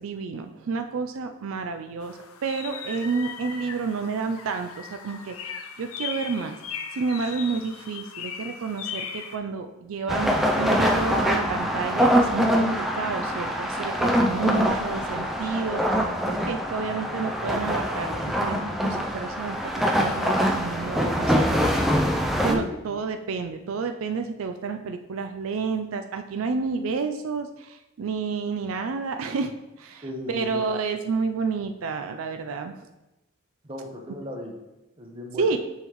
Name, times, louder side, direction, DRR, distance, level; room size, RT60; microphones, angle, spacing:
voice 1, 0.0-5.4 5.8-10.3 10.6-21.8 22.4-29.5 29.8-32.9 35.4-35.6, right 4 dB, 75° right, 6 dB, 0.4 m, -30 dB
sound 1, 2.0-9.4, left 7 dB, 85° left, 0.6 m, -38 dB
sound 2, 10.1-22.5, equal, ahead, 0.4 m, -24 dB
voice 2, 30.0-30.6 33.6-34.5 35.0-35.5, left 1 dB, 25° right, 2 dB, 0.8 m, -35 dB
6.9 x 5.5 x 3.1 m, 0.98 s
head